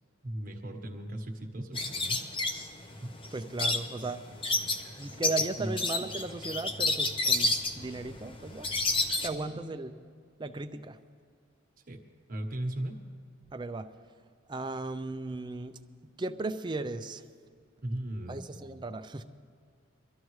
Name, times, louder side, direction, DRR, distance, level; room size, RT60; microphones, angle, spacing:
voice 1, 0.2-2.2 3.0-3.2 4.8-5.0 5.6-5.7 9.3-9.7 11.9-12.0 12.3-13.0 17.8-18.4, right 1 dB, 40° right, 2 dB, 1.2 m, -37 dB
sound 1, 1.7-9.3, left 2 dB, 25° left, 0.7 m, -30 dB
voice 2, 3.3-4.2 4.9-8.7 9.2-9.9 10.4-11.0 13.5-13.9 14.5-15.8 16.2-17.2 18.3-19.2, right 3 dB, 20° right, 9 dB, 0.5 m, -36 dB
23.0 x 13.5 x 3.2 m, 2.1 s
head